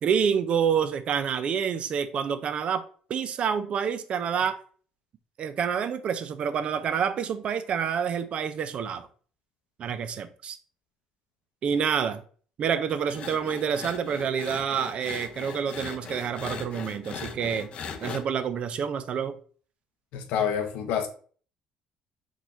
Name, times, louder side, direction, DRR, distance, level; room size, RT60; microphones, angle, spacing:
voice 1, 0.0-2.8 3.1-4.6 5.4-9.1 9.8-10.6 11.6-12.2 12.6-17.7 18.0-19.4, right 7 dB, 50° right, 0.4 m, -28 dB
Garage Saw, 13.1-18.2, left 6 dB, 50° left, 0.5 m, -39 dB
voice 2, 20.1-21.1, left 8 dB, 85° left, 0.7 m, -27 dB
3.7 x 3.0 x 2.5 m
cardioid pair, 105°, 2 cm